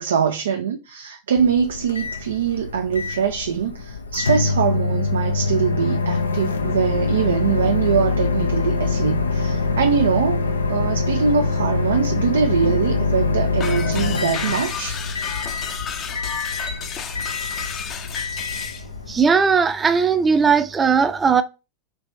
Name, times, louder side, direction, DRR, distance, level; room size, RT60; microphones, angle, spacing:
voice 1, 0.0-15.0, right 7 dB, 80° right, 0.4 m, -23 dB
Microwave oven, 1.4-19.3, left 3 dB, 90° left, 0.4 m, -24 dB
sound 1, 13.6-18.8, left 7 dB, 35° left, 0.6 m, -32 dB
voice 2, 19.1-21.4, right 5 dB, 20° right, 0.5 m, -18 dB
3.4 x 3.0 x 2.5 m
hypercardioid pair, 90°, 0 cm